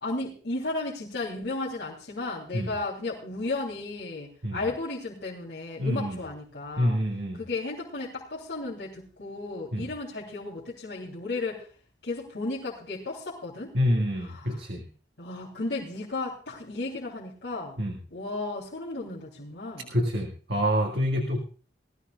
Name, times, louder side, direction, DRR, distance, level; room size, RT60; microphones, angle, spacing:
voice 1, 0.0-7.0 7.4-11.7 12.0-13.7 14.4-14.5 15.2-17.8 18.1-19.9, left 2 dB, 75° left, -5 dB, 3.3 m, -34 dB
voice 2, 5.8-6.2 6.8-7.4 9.7-9.9 13.7-14.9 17.8-18.0 19.9-21.4, equal, 65° right, 0 dB, 1.9 m, -27 dB
20.5 x 14.5 x 2.4 m, 0.38 s
head